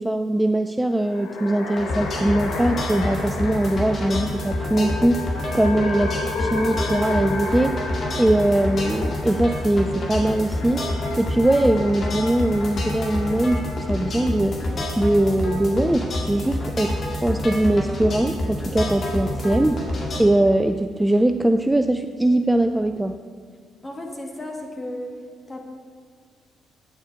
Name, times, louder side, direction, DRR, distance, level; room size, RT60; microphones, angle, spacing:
voice 1, 0.0-5.3 5.5-7.9 8.2-10.8 11.2-13.6 13.9-14.7 15.0-19.9 20.2-23.2, right 1 dB, 10° right, 8 dB, 0.4 m, -21 dB
sound 1, 0.9-14.3, left 3 dB, 75° left, 1.1 m, -33 dB
sound 2, 1.8-20.2, left 1 dB, 50° left, 2.0 m, -28 dB
voice 2, 23.8-25.2 25.5-25.7, left 1 dB, 25° left, 1 dB, 1.9 m, -34 dB
9.5 x 7.3 x 4.7 m, 2.1 s
hypercardioid pair, 50°, 0 cm